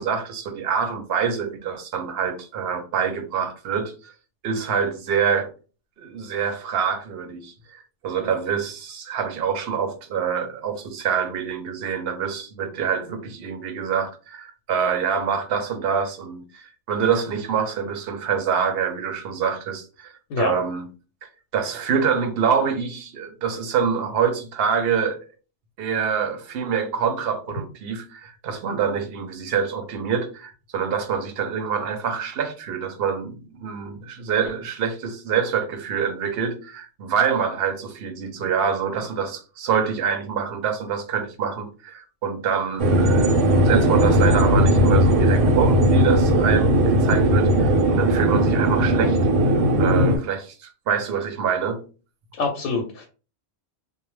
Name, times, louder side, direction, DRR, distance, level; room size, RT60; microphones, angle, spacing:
voice 1, 0.0-4.1 4.4-5.5 6.0-20.9 21.2-25.2 25.8-49.2 49.5-51.8, right 7 dB, 65° right, 0.7 m, -26 dB
sound 1, 42.8-50.2, right 1 dB, 90° right, 0.9 m, -18 dB
voice 2, 52.4-53.0, left 4 dB, 80° left, 0.9 m, -25 dB
2.2 x 2.0 x 3.1 m
omnidirectional pair, 1.2 m